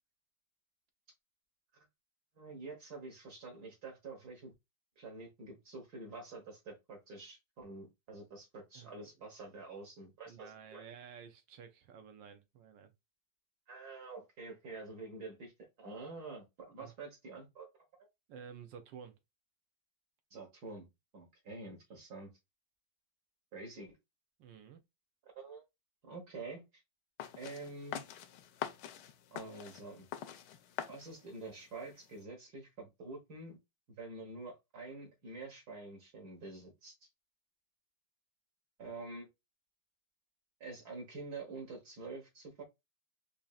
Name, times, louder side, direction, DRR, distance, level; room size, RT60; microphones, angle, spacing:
voice 1, 2.4-4.5 5.0-10.9 13.7-15.5 15.8-17.7 20.3-20.9 21.1-22.3 23.5-23.9 25.2-25.6 26.0-26.8 27.4-28.0 29.3-30.1 30.9-33.6 34.0-37.0 38.8-39.3 40.6-42.6, right 3 dB, 60° right, 1.7 m, -47 dB
voice 2, 8.7-9.1 10.3-12.9 16.8-16.9 18.3-19.2 24.4-24.8, right 7 dB, 75° right, 1.3 m, -52 dB
sound 1, 27.2-32.2, left 10 dB, 75° left, 1.1 m, -45 dB
5.1 x 2.8 x 2.3 m
omnidirectional pair, 2.1 m